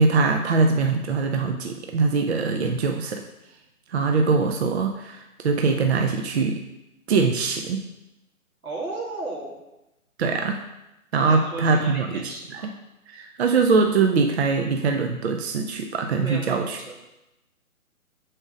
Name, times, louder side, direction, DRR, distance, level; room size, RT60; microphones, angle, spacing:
voice 1, 0.0-3.2 3.9-6.6 7.1-7.8 10.2-10.6 11.1-12.7 13.1-16.8, right 4 dB, 50° right, 4 dB, 0.6 m, -22 dB
voice 2, 8.6-9.6 11.2-12.7 16.2-17.0, right 2 dB, 90° right, -3 dB, 2.4 m, -35 dB
6.2 x 4.4 x 4.9 m, 0.94 s
figure-of-eight pair, 145°, 43 cm